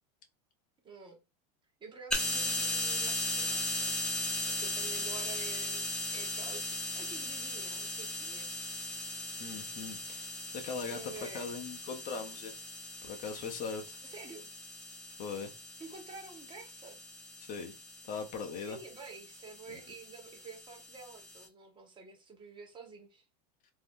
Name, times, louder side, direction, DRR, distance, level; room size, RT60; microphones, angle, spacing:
voice 1, 0.8-1.2 1.8-3.9 4.4-8.6 10.9-11.5 14.0-14.5 15.8-17.0 18.7-23.2, right 4 dB, 25° right, 0.9 m, -49 dB
sound 1, 2.1-21.5, left 2 dB, 5° left, 0.7 m, -38 dB
voice 2, 9.4-12.5 13.0-14.0 15.2-15.5 17.4-17.8 18.0-18.8 19.7-19.8, left 5 dB, 40° left, 0.6 m, -40 dB
2.7 x 2.0 x 3.5 m
supercardioid pair, 115°, 20 cm